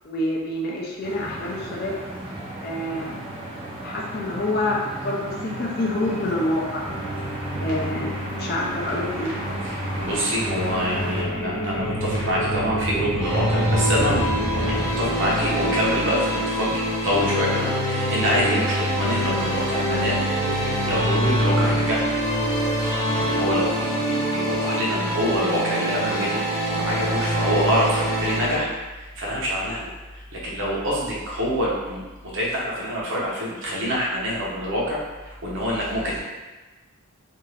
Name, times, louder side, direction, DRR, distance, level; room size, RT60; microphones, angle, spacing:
voice 1, 0.0-2.0 2.6-3.2 3.8-6.9 7.6-9.3, left 1 dB, 45° left, -2 dB, 0.5 m, -27 dB
sound 1, 1.0-11.2, right 1 dB, 25° right, 0.5 m, -34 dB
sound 2, 6.8-14.9, right 1 dB, 90° left, 0.8 m, -29 dB
voice 2, 9.6-20.2 20.6-22.2 23.1-26.4 26.7-36.2, equal, 60° right, -5 dB, 0.7 m, -26 dB
sound 3, 13.2-28.6, equal, 15° left, 0.9 m, -24 dB
2.5 x 2.4 x 3.2 m, 1.2 s
head